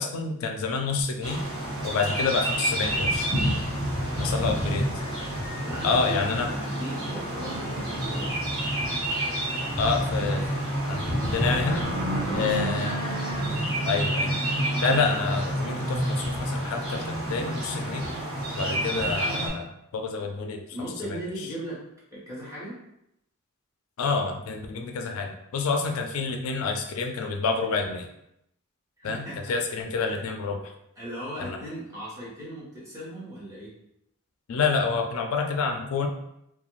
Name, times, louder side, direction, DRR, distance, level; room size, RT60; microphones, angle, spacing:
voice 1, 0.0-1.4 1.8-3.3 4.2-4.9 5.8-6.5 9.8-10.4 10.9-11.0 11.3-11.9 12.3-13.0 13.9-14.4 14.8-18.1 18.6-20.6 21.1-21.2 24.0-28.1 29.0-30.7 31.4-31.6 34.5-36.1, left 4 dB, 70° left, 4 dB, 0.3 m, -28 dB
sound 1, 1.2-19.5, right 1 dB, 45° right, 1.2 m, -28 dB
voice 2, 4.1-4.8 5.6-8.3 12.3-12.8 20.7-21.8 22.1-22.8 29.0-29.5 30.1-30.2 31.0-33.7, right 1 dB, 15° right, -8 dB, 0.9 m, -38 dB
2.3 x 2.2 x 3.0 m, 0.80 s
head